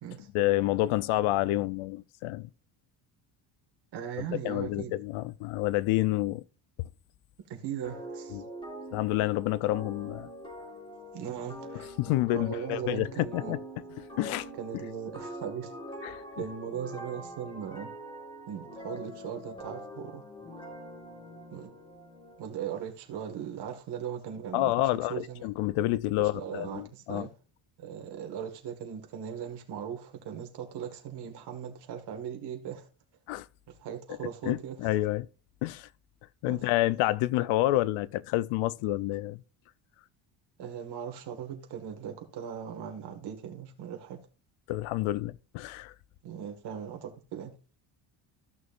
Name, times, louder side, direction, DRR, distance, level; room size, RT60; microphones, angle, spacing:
voice 1, 0.3-2.5 4.2-6.4 8.3-8.5 8.9-10.3 12.0-13.6 14.2-14.5 16.0-16.2 24.5-27.3 33.3-33.5 34.4-35.3 35.6-35.9 36.4-39.4 44.7-45.9, left 16 dB, 80° left, 0.7 m, -28 dB
voice 2, 3.9-4.9 7.5-8.4 11.1-11.9 12.3-13.6 14.6-15.7 16.4-17.9 18.5-20.2 21.5-21.7 22.4-25.5 26.2-27.3 27.8-32.9 33.7-34.8 36.5-36.6 40.6-44.2 46.2-47.5, right 8 dB, 55° right, 1.9 m, -39 dB
sound 1, 7.8-22.4, equal, 10° left, 3.5 m, -44 dB
14.5 x 6.3 x 2.5 m
cardioid pair, 155°, 48 cm